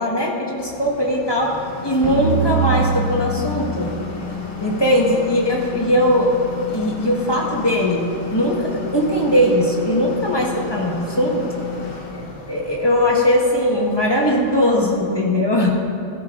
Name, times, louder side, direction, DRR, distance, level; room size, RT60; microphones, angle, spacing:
voice 1, 0.0-1.5 1.8-3.9 4.6-6.3 6.7-8.0 8.3-11.7 12.5-15.7, equal, 20° left, -2 dB, 1.4 m, -19 dB
sound 1, 0.6-15.3, left 6 dB, 55° left, 1.2 m, -33 dB
sound 2, 2.0-5.3, right 4 dB, 40° right, 2.1 m, -24 dB
14.5 x 13.0 x 2.5 m, 2.6 s
omnidirectional pair, 1.2 m